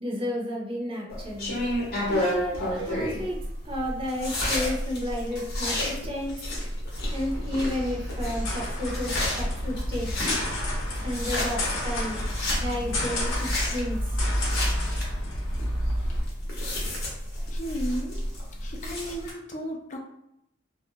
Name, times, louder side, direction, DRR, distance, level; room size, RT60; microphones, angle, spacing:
voice 1, 0.0-1.6 2.1-3.4 3.6-6.3 7.1-10.1 11.0-12.2 12.6-14.0, left 1 dB, 30° right, -2 dB, 0.6 m, -32 dB
sound 1, 1.1-19.3, left 1 dB, 55° left, 0.8 m, -31 dB
sound 2, 2.8-4.9, right 5 dB, 75° right, 0.4 m, -47 dB
sound 3, 6.9-16.2, left 1 dB, 85° left, 0.8 m, -30 dB
voice 2, 17.5-18.2 18.6-20.0, equal, 40° left, 1 dB, 0.5 m, -34 dB
2.4 x 2.1 x 2.8 m, 0.81 s
head